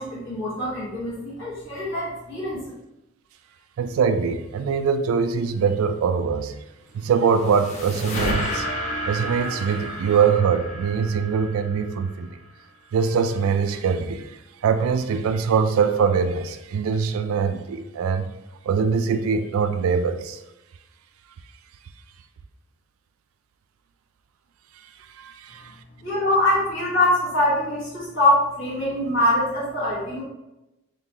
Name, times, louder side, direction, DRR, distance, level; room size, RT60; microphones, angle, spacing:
voice 1, 0.0-2.6 26.0-30.2, left 1 dB, 60° left, 1.4 m, -23 dB
voice 2, 3.8-6.6 6.9-8.7 9.1-12.3 12.9-14.3 14.6-18.3 18.6-20.4 25.2-25.7, right 6 dB, 75° right, 0.3 m, -23 dB
sound 1, 6.9-12.3, equal, 30° left, 0.6 m, -31 dB
3.8 x 3.4 x 2.8 m
head